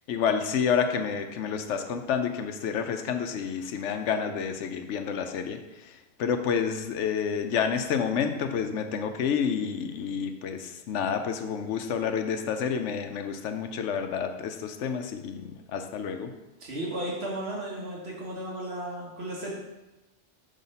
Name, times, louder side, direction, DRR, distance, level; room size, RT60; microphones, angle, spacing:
voice 1, 0.1-5.6 6.2-16.3, left 7 dB, 90° left, 7 dB, 0.9 m, -29 dB
voice 2, 16.6-19.5, right 1 dB, 60° right, -3 dB, 1.6 m, -34 dB
5.6 x 3.6 x 5.3 m, 1.0 s
omnidirectional pair, 1.2 m